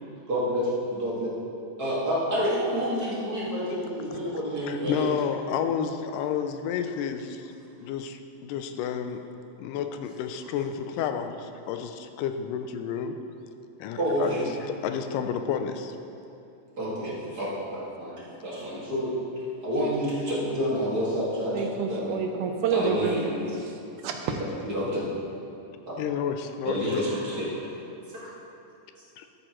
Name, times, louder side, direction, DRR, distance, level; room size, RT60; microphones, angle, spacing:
voice 1, 0.3-1.3 1.8-4.9 14.0-14.4 16.8-18.1 18.4-19.1 19.6-21.6 21.9-22.2 22.7-23.3 24.7-25.0 26.6-27.5 28.1-28.3, equal, 35° right, -8 dB, 2.1 m, -28 dB
voice 2, 4.7-7.5 7.8-9.2 9.6-13.2 13.8-16.0 26.0-27.1, left 8 dB, 85° left, 7 dB, 2.2 m, -31 dB
voice 3, 21.5-23.2 23.5-24.4, right 5 dB, 80° right, 4 dB, 2.0 m, -29 dB
13.0 x 8.8 x 3.1 m, 2.7 s
omnidirectional pair, 3.7 m